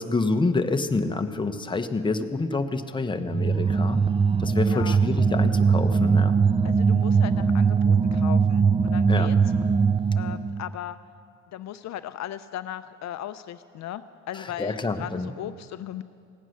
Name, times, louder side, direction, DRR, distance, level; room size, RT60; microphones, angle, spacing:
voice 1, 0.0-4.0 4.4-6.3 9.1-9.3 14.4-15.3, left 3 dB, 15° left, 7 dB, 0.8 m, -27 dB
sound 1, 3.3-10.6, right 5 dB, 20° right, 0.3 m, -21 dB
voice 2, 6.6-9.4 10.2-11.0 11.5-16.0, left 11 dB, 65° left, 12 dB, 0.5 m, -37 dB
16.5 x 9.2 x 6.4 m, 2.3 s
cardioid pair, 90°, 30 cm